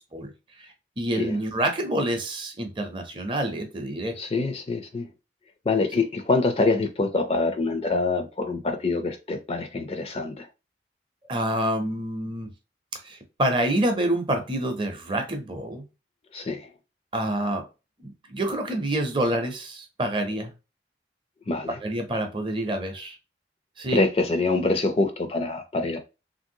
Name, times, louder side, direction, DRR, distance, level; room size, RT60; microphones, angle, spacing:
voice 1, 1.0-4.1 11.3-12.5 13.0-15.8 17.1-17.7 18.0-20.5 21.8-23.2 23.8-24.0, right 1 dB, 30° right, 0.6 m, -27 dB
voice 2, 4.2-5.1 5.7-10.5 16.3-16.7 21.5-21.8 23.9-26.0, left 3 dB, 35° left, 0.4 m, -25 dB
3.2 x 2.6 x 2.6 m
head